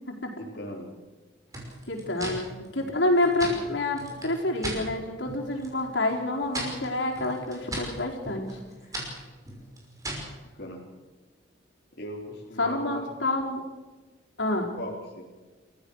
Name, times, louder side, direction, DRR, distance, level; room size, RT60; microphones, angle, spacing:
voice 1, 0.4-0.9 2.2-2.3 10.5-10.8 12.0-12.9 14.8-15.2, left 1 dB, 55° left, -3 dB, 3.4 m, -38 dB
sound 1, 1.5-4.8 5.2-5.8 6.1-10.4, right 1 dB, 20° right, 5.8 m, -38 dB
voice 2, 1.9-8.6 12.6-13.6 14.4-14.8, left 2 dB, 80° left, 0 dB, 4.6 m, -28 dB
29.0 x 15.0 x 6.5 m, 1.3 s
head